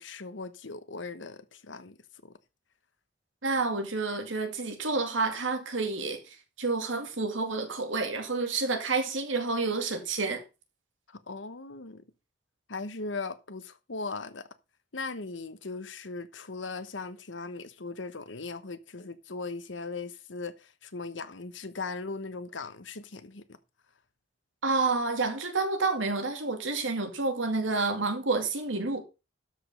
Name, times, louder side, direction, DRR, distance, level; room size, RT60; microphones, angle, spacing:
voice 1, 0.0-2.0 2.2-2.3 11.3-12.0 12.7-14.4 14.9-23.4, left 3 dB, 80° left, 1.1 m, -38 dB
voice 2, 3.4-10.4 24.6-29.0, right 3 dB, 90° right, 2.2 m, -29 dB
12.5 x 5.2 x 5.4 m
head